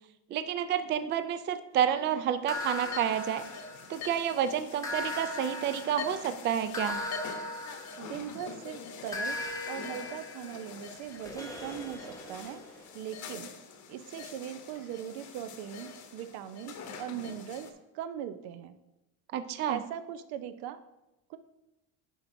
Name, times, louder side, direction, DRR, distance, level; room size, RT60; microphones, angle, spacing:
voice 1, 0.3-3.4 3.9-7.0 19.3-19.8, right 9 dB, 30° right, 11 dB, 0.4 m, -29 dB
sound 1, 2.5-17.7, left 5 dB, 50° left, 0.9 m, -45 dB
sound 2, 2.5-4.2 4.8-8.5 9.1-12.8, left 2 dB, 10° left, 0.9 m, -39 dB
voice 2, 8.0-9.4 9.7-13.5 13.9-17.7 17.9-18.8 19.7-20.8 21.3-21.4, right 10 dB, 75° right, 11 dB, 0.7 m, -40 dB
11.0 x 4.5 x 2.6 m, 0.94 s
cardioid pair, 125°, 39 cm